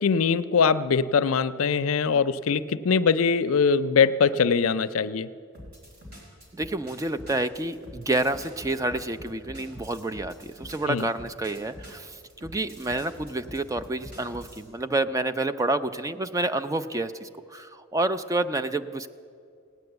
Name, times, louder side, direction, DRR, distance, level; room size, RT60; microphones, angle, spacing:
voice 1, 0.0-5.3 10.9-11.1, left 5 dB, 75° left, 14 dB, 0.5 m, -22 dB
sound 1, 5.5-14.7, equal, 50° right, 3.4 m, -45 dB
voice 2, 6.5-19.1, right 2 dB, 15° right, 11 dB, 0.4 m, -29 dB
16.5 x 9.5 x 8.0 m, 2.3 s
head